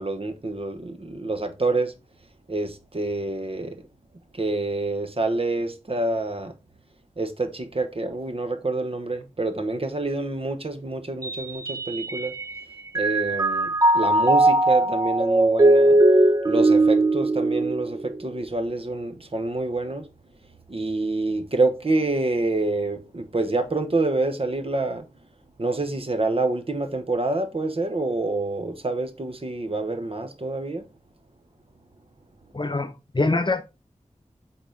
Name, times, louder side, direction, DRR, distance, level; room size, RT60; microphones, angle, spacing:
voice 1, 0.0-1.9 2.5-3.7 4.3-6.5 7.2-12.3 12.9-13.7 13.9-16.0 16.5-20.0 20.7-25.0 25.6-30.8, right 2 dB, 50° right, 1.0 m, -27 dB
Mallet percussion, 11.2-12.6 12.9-18.4, right 2 dB, 30° right, 0.6 m, -20 dB
voice 2, 32.5-33.6, left 2 dB, 40° left, 0.9 m, -24 dB
8.1 x 4.0 x 3.8 m
wide cardioid pair, 70°, 13 cm